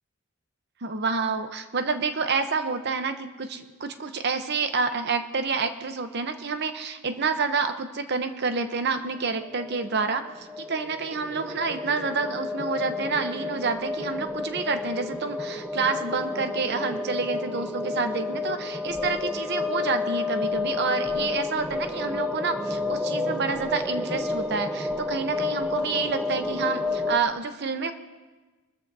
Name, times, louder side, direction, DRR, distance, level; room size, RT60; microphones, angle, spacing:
voice 1, 0.8-27.9, right 4 dB, 50° right, 8 dB, 0.8 m, -28 dB
sound 1, 9.4-27.2, left 3 dB, 5° right, 0.7 m, -30 dB
22.0 x 13.5 x 2.7 m, 1.3 s
head